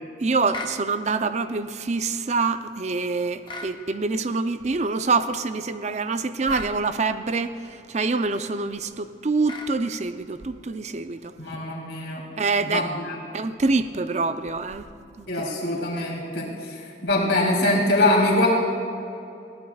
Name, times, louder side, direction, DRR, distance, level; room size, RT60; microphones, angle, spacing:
voice 1, 0.2-11.3 12.4-12.9 13.3-14.9 15.2-15.3, right 4 dB, 40° right, 10 dB, 0.5 m, -25 dB
sound 1, 0.5-0.8 3.4-3.8 6.5-6.7 9.4-9.7, left 2 dB, 25° left, 0.8 m, -36 dB
voice 2, 11.4-12.2 12.6-13.2 15.3-18.5, left 1 dB, 80° left, -3 dB, 3.2 m, -23 dB
21.0 x 15.5 x 2.4 m, 2.7 s
head